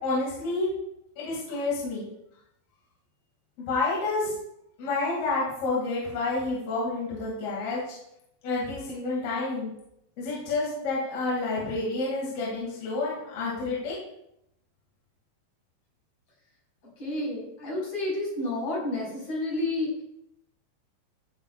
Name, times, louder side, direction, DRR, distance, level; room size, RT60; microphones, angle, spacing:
voice 1, 0.0-0.7 1.2-2.1 3.6-4.3 4.8-7.8 8.4-9.7 10.2-14.0, left 3 dB, 55° left, -6 dB, 3.9 m, -29 dB
voice 2, 17.0-19.9, left 2 dB, 35° left, -5 dB, 5.5 m, -30 dB
16.0 x 9.0 x 2.4 m, 0.78 s
omnidirectional pair, 5.4 m